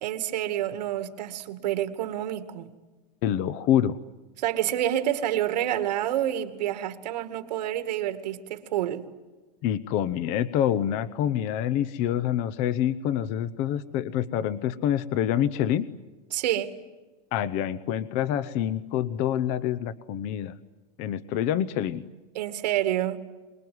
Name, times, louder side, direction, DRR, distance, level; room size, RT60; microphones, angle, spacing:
voice 1, 0.0-2.7 4.4-9.1 16.3-16.7 22.3-23.2, right 12 dB, 80° right, 2.3 m, -28 dB
voice 2, 3.2-4.0 9.6-15.9 17.3-20.5 21.0-22.0, left 10 dB, 35° left, 0.8 m, -26 dB
25.5 x 21.0 x 9.6 m
supercardioid pair, 170°, 21 cm